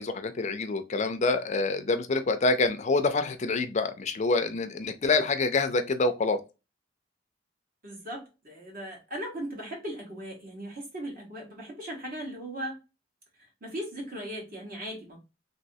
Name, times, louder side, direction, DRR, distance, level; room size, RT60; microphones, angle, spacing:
voice 1, 0.0-6.4, left 3 dB, 40° left, 0.5 m, -26 dB
voice 2, 7.8-12.8 13.6-15.2, right 1 dB, 50° right, 1.5 m, -38 dB
3.1 x 2.9 x 2.7 m
head